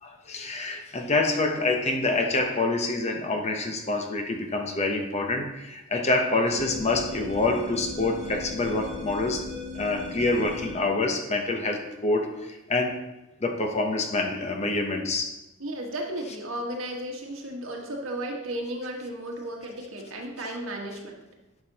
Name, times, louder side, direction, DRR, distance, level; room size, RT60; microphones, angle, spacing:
voice 1, 0.0-9.5 9.7-13.0 13.4-15.3, left 2 dB, 30° left, 4 dB, 0.7 m, -26 dB
sound 1, 6.5-10.9, left 3 dB, 60° right, 2.4 m, -37 dB
voice 2, 15.6-21.2, right 1 dB, 75° right, 0 dB, 1.4 m, -34 dB
11.0 x 5.8 x 2.8 m, 0.97 s
head